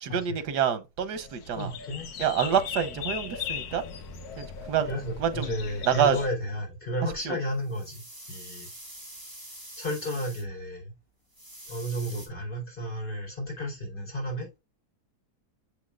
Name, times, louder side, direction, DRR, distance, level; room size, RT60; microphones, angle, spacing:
voice 1, 0.0-1.7 2.2-3.8 4.4-4.9 5.2-5.5 5.9-6.2 7.2-7.4, right 8 dB, 85° right, 1.5 m, -27 dB
sound 1, 1.0-6.3, left 7 dB, 70° left, 1.4 m, -38 dB
voice 2, 1.5-2.1 4.9-8.0 8.3-8.7 9.8-10.9 11.7-14.6, equal, 30° left, 4.1 m, -32 dB
sound 2, 7.5-10.4 11.3-12.3, right 1 dB, 10° right, 3.1 m, -45 dB
7.0 x 6.4 x 2.4 m
omnidirectional pair, 1.7 m